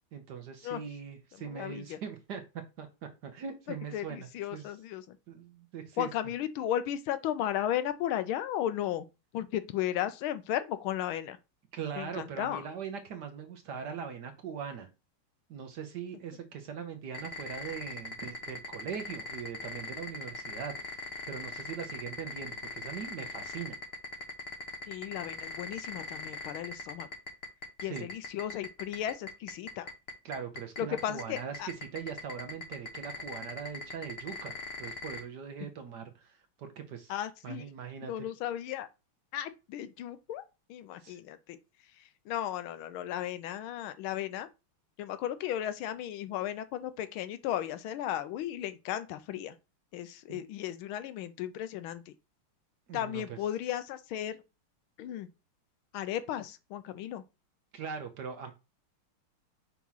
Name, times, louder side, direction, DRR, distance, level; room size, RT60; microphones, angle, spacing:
voice 1, 0.1-2.4 2.8-4.7 5.3-6.1 11.7-14.9 15.5-23.8 27.8-28.1 30.2-34.5 34.8-37.1 37.4-38.3 41.0-41.2 50.3-50.4 52.9-53.4 57.7-58.5, right 7 dB, 65° right, 1.1 m, -41 dB
voice 2, 1.5-2.0 3.9-5.2 6.0-9.1 9.3-11.4 12.0-12.6 24.9-27.1 27.8-29.9 30.8-31.7 37.1-37.7 38.0-38.9 39.3-40.4 40.7-41.6 42.3-44.5 45.0-49.5 49.9-52.1 52.9-54.4 55.0-55.3 55.9-57.2, left 11 dB, 75° left, 1.3 m, -35 dB
sound 1, 17.1-35.2, left 3 dB, 40° left, 0.9 m, -39 dB
5.9 x 3.0 x 5.5 m
omnidirectional pair, 2.4 m